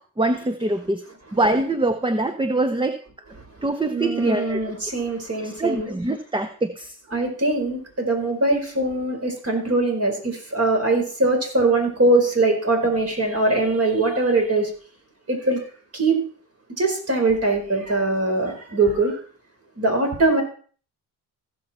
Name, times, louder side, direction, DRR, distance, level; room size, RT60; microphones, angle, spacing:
voice 1, 0.2-1.0 1.3-3.0 3.6-4.6 5.4-7.0, right 2 dB, 10° right, 9 dB, 0.9 m, -23 dB
voice 2, 3.9-5.9 7.1-14.7 15.3-15.6 15.9-16.2 16.8-19.2 19.8-20.4, right 2 dB, 35° right, 2 dB, 4.6 m, -22 dB
15.5 x 7.0 x 4.2 m, 0.43 s
supercardioid pair, 60°, 42 cm